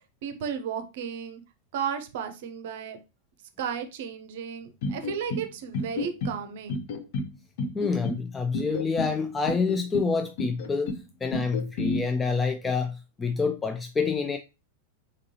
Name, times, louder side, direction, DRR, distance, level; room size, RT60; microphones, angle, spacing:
voice 1, 0.2-1.4 1.7-3.0 3.6-6.8, right 7 dB, 55° right, 0.6 m, -34 dB
sound 1, 4.8-5.5 5.7-6.4 6.7-7.3 7.6-8.2 8.5-9.1 9.5-10.1 10.4-11.0 11.3-12.0, left 2 dB, 50° left, 0.7 m, -30 dB
voice 2, 7.7-14.4, left 5 dB, 15° left, 0.3 m, -27 dB
3.8 x 3.7 x 2.7 m
figure-of-eight pair, 90°, 0 cm